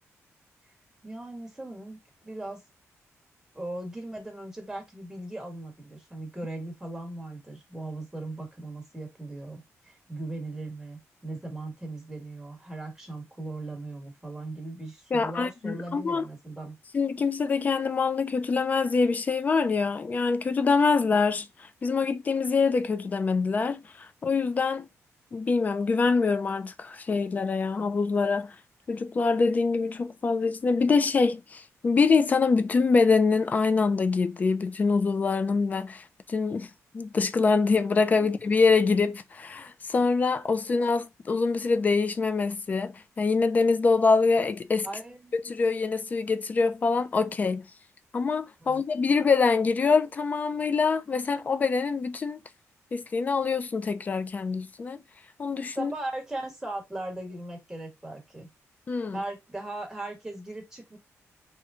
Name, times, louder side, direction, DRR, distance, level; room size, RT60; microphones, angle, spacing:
voice 1, 1.0-2.6 3.5-16.7 38.2-38.3 44.8-45.4 48.6-48.8 55.8-58.5 59.1-61.0, right 2 dB, 10° right, 1.3 m, -38 dB
voice 2, 15.1-16.2 16.9-24.9 25.3-28.5 28.9-44.9 45.3-47.7 48.1-52.4 52.9-55.0 55.4-55.9 58.9-59.2, left 4 dB, 30° left, 0.4 m, -25 dB
3.1 x 2.2 x 3.5 m
wide cardioid pair, 150°, 5 cm